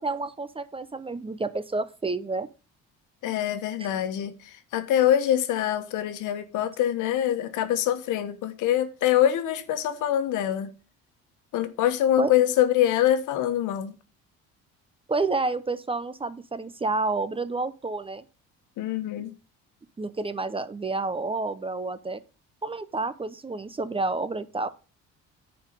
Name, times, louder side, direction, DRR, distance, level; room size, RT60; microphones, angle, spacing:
voice 1, 0.0-2.5 12.2-12.3 15.1-18.2 20.0-22.2 22.6-24.7, right 3 dB, 20° right, 0.6 m, -29 dB
voice 2, 3.2-10.7 11.5-13.9 18.8-19.3, left 11 dB, 75° left, 1.2 m, -24 dB
9.9 x 4.6 x 5.2 m
cardioid pair, 95°, 31 cm